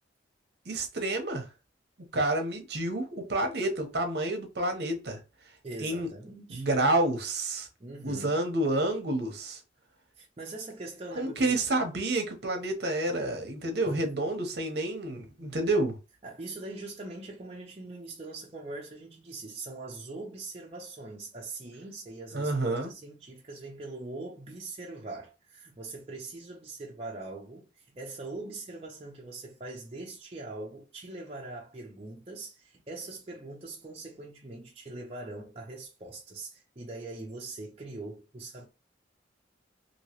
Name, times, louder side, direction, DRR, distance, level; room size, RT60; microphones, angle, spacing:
voice 1, 0.7-1.5 2.1-5.2 5.8-6.1 6.5-7.7 8.0-9.6 11.2-16.0 22.3-22.9, right 2 dB, 55° right, 0.9 m, -29 dB
voice 2, 5.6-6.7 7.8-8.4 10.2-11.6 13.9-14.1 16.2-27.7 27.9-38.7, right 2 dB, 30° right, 0.6 m, -42 dB
3.0 x 2.8 x 2.9 m
head